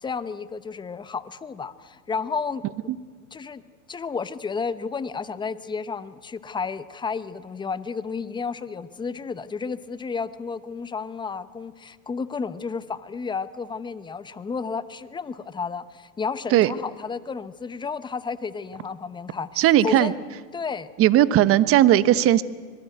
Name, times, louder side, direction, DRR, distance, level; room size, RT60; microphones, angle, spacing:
voice 1, 0.0-2.6 3.3-3.6 3.9-20.1 20.5-20.9, left 5 dB, 10° left, 14 dB, 0.9 m, -32 dB
voice 2, 19.6-20.1 21.0-22.4, right 13 dB, 30° right, 16 dB, 1.0 m, -17 dB
25.5 x 20.5 x 9.3 m, 1.5 s
hypercardioid pair, 120°, 43 cm